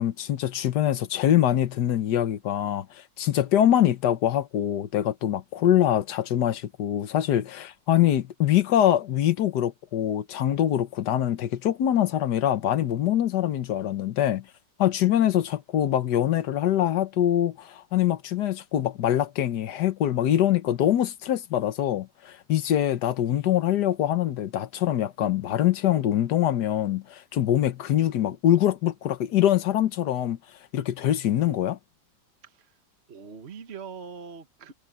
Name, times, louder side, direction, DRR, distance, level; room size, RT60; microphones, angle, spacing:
voice 1, 0.0-2.9 3.2-14.4 14.8-30.4 30.7-31.8, left 11 dB, 70° left, 1.5 m, -24 dB
voice 2, 32.4-32.8 33.1-34.7, right 5 dB, 40° right, 1.4 m, -42 dB
omnidirectional pair, 2.0 m